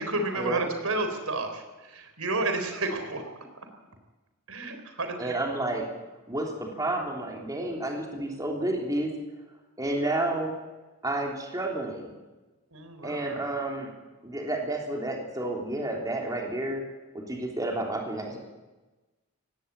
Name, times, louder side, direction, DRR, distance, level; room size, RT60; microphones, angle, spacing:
voice 1, 0.0-3.2 4.5-5.4 12.7-13.4, right 2 dB, 90° right, 7 dB, 3.7 m, -31 dB
voice 2, 5.2-5.8 6.3-9.1 9.8-10.5 11.0-12.1 13.0-13.9 14.2-16.8 17.1-18.4, right 2 dB, 15° right, 0 dB, 3.3 m, -30 dB
18.5 x 16.5 x 8.8 m, 1.2 s
head